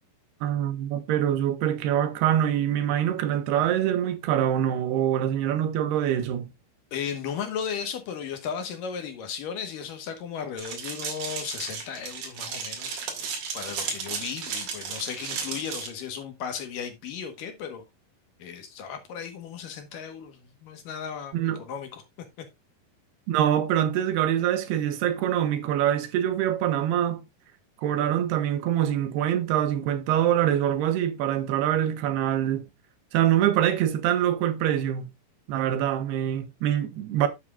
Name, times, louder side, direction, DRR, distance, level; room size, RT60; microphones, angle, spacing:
voice 1, 0.4-6.5 21.3-21.6 23.3-27.3 27.8-32.7 33.1-35.1 35.5-37.3, right 11 dB, 85° right, 3.1 m, -24 dB
voice 2, 6.9-13.0 13.5-17.8 18.4-22.0, left 7 dB, 65° left, 2.7 m, -35 dB
sound 1, 10.6-15.9, right 6 dB, 60° right, 3.8 m, -34 dB
11.5 x 7.5 x 2.4 m
omnidirectional pair, 4.6 m